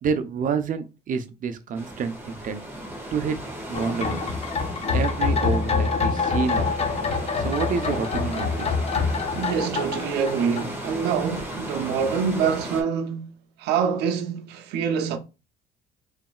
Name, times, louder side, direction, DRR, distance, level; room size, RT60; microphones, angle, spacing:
voice 1, 0.0-2.6 3.1-3.4 3.7-4.3 4.9-6.7 7.4-8.8, right 6 dB, 50° right, 0.8 m, -28 dB
sound 1, 1.7-12.8, right 1 dB, 10° right, 1.9 m, -36 dB
sound 2, 3.7-11.1 11.4-11.5, left 4 dB, 40° left, 0.9 m, -26 dB
voice 2, 9.3-15.2, right 6 dB, 85° right, 0.8 m, -26 dB
4.0 x 3.4 x 2.4 m
cardioid pair, 110°, 17 cm